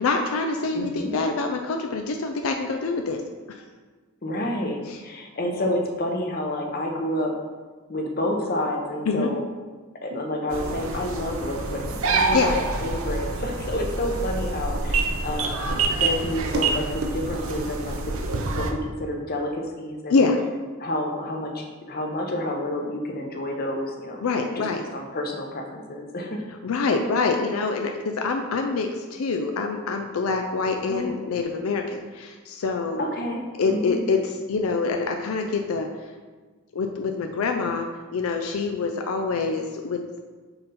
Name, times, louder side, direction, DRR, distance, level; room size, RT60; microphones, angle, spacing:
voice 1, 0.0-3.2 3.5-3.6 4.9-5.0 9.1-9.3 12.3-12.6 20.1-20.4 24.2-24.8 26.6-33.0 33.6-35.9 36.7-37.9 38.1-40.0, left 4 dB, 85° left, 4 dB, 0.4 m, -25 dB
voice 2, 0.7-1.1 4.2-7.3 7.9-9.4 10.0-12.6 12.8-18.0 18.4-20.2 20.8-24.2 24.6-26.4 30.9-31.1 33.0-33.4 33.7-34.0, left 1 dB, 45° left, 2 dB, 0.8 m, -29 dB
sound 1, 10.5-18.7, right 3 dB, 80° right, 0.7 m, -27 dB
5.8 x 3.9 x 4.2 m, 1.4 s
head